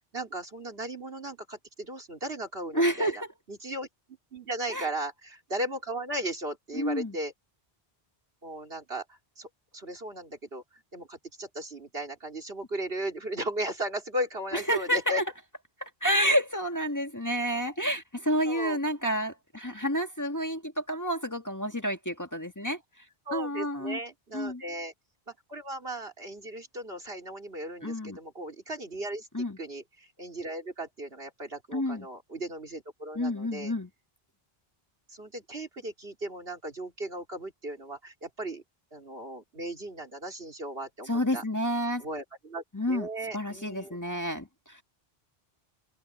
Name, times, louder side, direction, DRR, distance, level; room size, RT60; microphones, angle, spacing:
voice 1, 0.1-3.1 3.5-3.9 4.3-7.3 8.4-9.5 9.7-15.2 18.5-18.8 23.3-24.9 25.5-33.7 35.1-38.6 38.9-41.4 42.0-44.0 44.2-44.3, right 1 dB, 75° right, 3.9 m, -36 dB
voice 2, 2.7-3.3 4.7-4.9 6.7-7.1 14.5-15.2 15.8-22.8 23.3-24.0 24.3-24.6 27.8-28.2 29.3-29.6 31.7-32.1 33.2-33.9 41.1-42.1 42.7-43.1 43.3-44.8, equal, 15° left, 1.7 m, -29 dB
open air
omnidirectional pair, 1.0 m